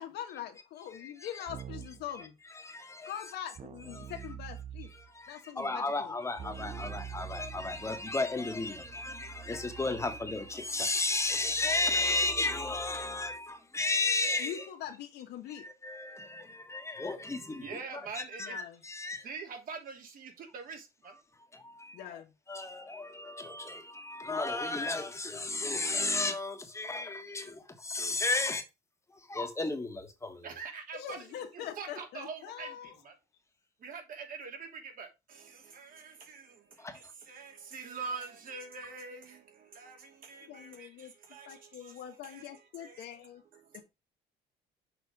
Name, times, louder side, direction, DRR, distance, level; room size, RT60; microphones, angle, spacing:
voice 1, 0.0-2.4 3.0-4.9 5.3-6.1 14.4-15.7 18.4-18.8 21.9-22.3 30.9-33.0 40.4-41.1 41.4-43.4 43.7-43.8, left 10 dB, 80° left, 1.6 m, -43 dB
Keyboard (musical), 1.5-2.1 3.6-5.1 6.4-13.4, right 9 dB, 40° right, 0.7 m, -47 dB
voice 2, 2.6-3.1 4.0-4.1 4.9-14.6 15.6-17.8 18.2-19.2 21.5-22.0 22.5-28.6 29.1-30.5 36.8-36.9, left 2 dB, 15° left, 1.5 m, -33 dB
voice 3, 17.6-18.6 19.2-21.2 30.4-31.2 31.5-33.1 33.8-43.2 43.5-43.8, right 5 dB, 55° right, 2.6 m, -45 dB
6.7 x 4.5 x 4.9 m
cardioid pair, 110°, 17 cm